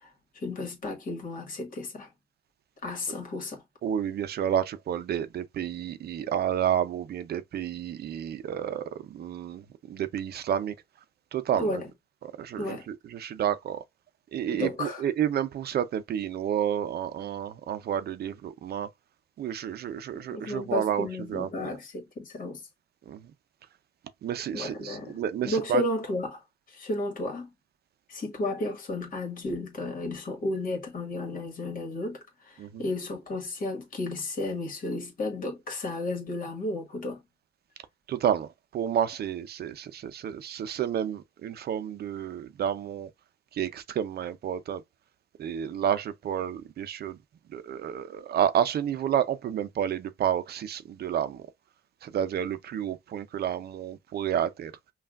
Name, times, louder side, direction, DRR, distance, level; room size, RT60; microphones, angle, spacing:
voice 1, 0.3-2.1 2.8-3.6 11.6-11.9 12.6-12.9 14.5-15.0 20.1-22.6 24.5-25.1 25.4-26.4 26.7-27.5 28.1-37.2, left 2 dB, 55° left, 1.7 m, -33 dB
voice 2, 3.8-10.7 11.3-11.8 12.2-13.8 14.3-18.9 19.4-21.8 23.1-23.3 24.2-25.8 32.6-32.9 38.1-43.1 43.5-44.8 45.4-47.2 47.5-51.5 52.0-54.7, right 9 dB, 70° right, 0.6 m, -30 dB
5.6 x 2.4 x 2.4 m
cardioid pair, 105°, 17 cm